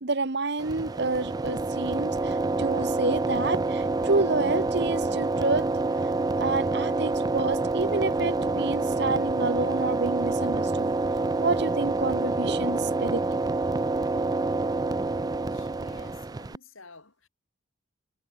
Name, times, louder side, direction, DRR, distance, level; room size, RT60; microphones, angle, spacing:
voice 1, 0.0-5.7 6.4-10.9 11.4-13.2, right 3 dB, 55° right, 1.2 m, -29 dB
sound 1, 0.6-16.6, right 2 dB, 20° right, 0.4 m, -27 dB
voice 2, 15.4-17.3, left 3 dB, 85° left, 7.2 m, -51 dB
head